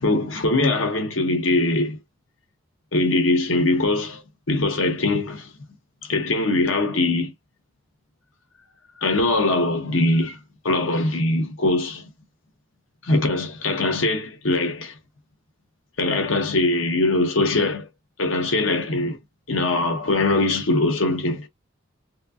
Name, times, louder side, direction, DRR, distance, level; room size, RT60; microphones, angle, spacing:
voice 1, 0.0-2.0 2.9-4.2 4.5-5.5 6.0-7.3 9.0-10.4 10.6-12.0 13.0-15.0 16.0-17.9 18.2-19.2 19.5-21.5, left 2 dB, 80° left, 1.2 m, -22 dB
4.3 x 2.3 x 2.4 m
head